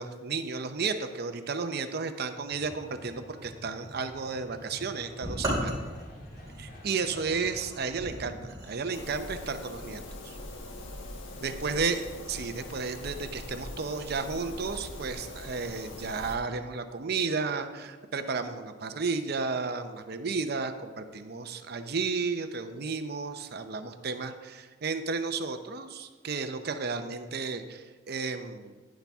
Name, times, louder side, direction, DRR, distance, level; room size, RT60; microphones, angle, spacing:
voice 1, 0.0-5.8 6.6-10.4 11.4-12.0 12.3-28.7, right 4 dB, 55° right, 8 dB, 0.6 m, -33 dB
sound 1, 2.5-8.0, equal, 50° left, 1.7 m, -48 dB
sound 2, 5.2-9.0, equal, 20° right, 3.7 m, -36 dB
sound 3, 8.9-16.4, left 1 dB, 90° left, 1.3 m, -42 dB
10.5 x 10.0 x 3.5 m, 1.4 s
head